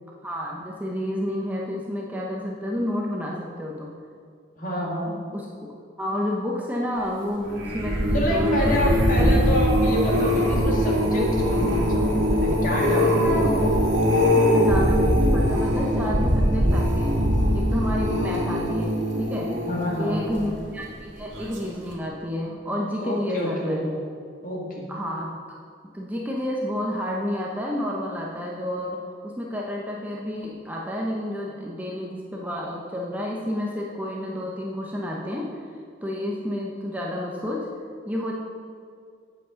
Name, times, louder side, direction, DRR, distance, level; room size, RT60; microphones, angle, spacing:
voice 1, 0.2-3.9 5.3-9.1 13.2-13.5 14.3-17.2 17.5-19.5 20.0-23.8 24.9-25.6 25.9-35.6 36.0-37.6 38.0-38.3, left 1 dB, 10° right, -3 dB, 0.8 m, -30 dB
voice 2, 4.6-5.1 8.1-13.6 19.6-20.4 23.0-23.9 24.4-24.8, equal, 45° left, -3 dB, 2.0 m, -28 dB
sound 1, 7.5-20.8 21.3-21.7 21.9-22.0, equal, 80° right, 1.9 m, -22 dB
8.4 x 8.0 x 5.1 m, 2.2 s
head